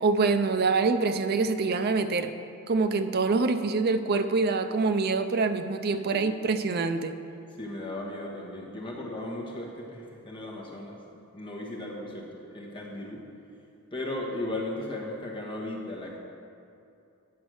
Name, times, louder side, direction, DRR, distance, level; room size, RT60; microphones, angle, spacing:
voice 1, 0.0-2.3 2.7-7.1, right 4 dB, 45° right, 8 dB, 0.4 m, -25 dB
voice 2, 7.6-11.0 11.3-13.2 13.9-16.2, left 1 dB, 20° left, -2 dB, 1.1 m, -36 dB
9.3 x 5.2 x 6.3 m, 2.6 s
head